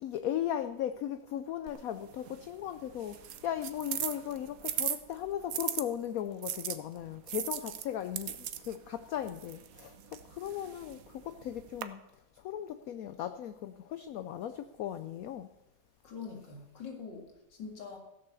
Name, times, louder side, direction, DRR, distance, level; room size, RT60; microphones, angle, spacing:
voice 1, 0.0-12.0 12.3-15.5, left 10 dB, 70° left, 10 dB, 0.9 m, -37 dB
sound 1, 1.7-5.8 6.4-11.8, right 10 dB, 60° right, 1.1 m, -39 dB
voice 2, 16.0-18.0, left 5 dB, 85° left, 3 dB, 2.7 m, -44 dB
15.5 x 6.8 x 6.9 m, 0.95 s
omnidirectional pair, 1.9 m